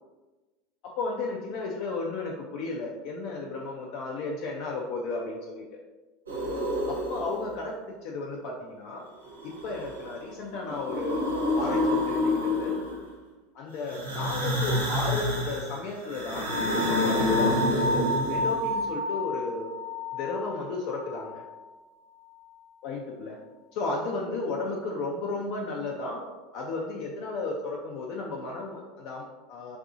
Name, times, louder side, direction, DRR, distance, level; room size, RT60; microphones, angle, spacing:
voice 1, 0.8-5.8 6.9-9.1 9.4-11.3 11.6-12.8 13.5-19.7 20.1-21.4 22.8-23.4 23.7-26.2 26.5-29.8, left 3 dB, 55° left, -1 dB, 0.3 m, -34 dB
sound 1, 6.3-7.5 9.3-10.2 10.5-13.1 13.8-18.7, left 1 dB, 90° right, 0.6 m, -28 dB
sound 2, 16.5-21.6, left 1 dB, 10° left, 0.8 m, -31 dB
2.6 x 2.5 x 2.4 m, 1.2 s
hypercardioid pair, 80°, 0 cm